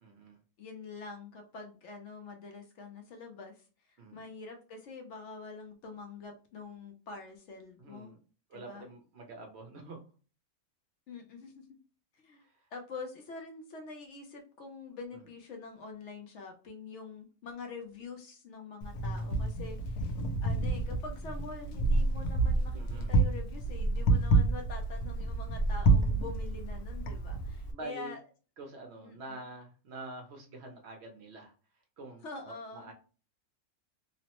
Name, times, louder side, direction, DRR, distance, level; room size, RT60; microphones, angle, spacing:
voice 1, 0.0-0.4 4.0-4.3 7.8-8.2 8.5-10.0 12.4-12.7 15.1-15.2 22.7-23.2 27.7-28.1 28.6-31.5 32.0-32.9, right 2 dB, 60° right, 3 dB, 0.7 m, -47 dB
voice 2, 0.6-8.1 8.5-8.9 11.1-11.6 12.1-12.4 12.7-20.1 20.4-28.2 29.0-29.4 32.2-32.9, left 4 dB, 65° left, 3 dB, 0.8 m, -45 dB
Wind, 18.8-27.7, right 2 dB, 85° left, 1.1 m, -29 dB
3.0 x 2.0 x 2.8 m, 0.37 s
omnidirectional pair, 1.5 m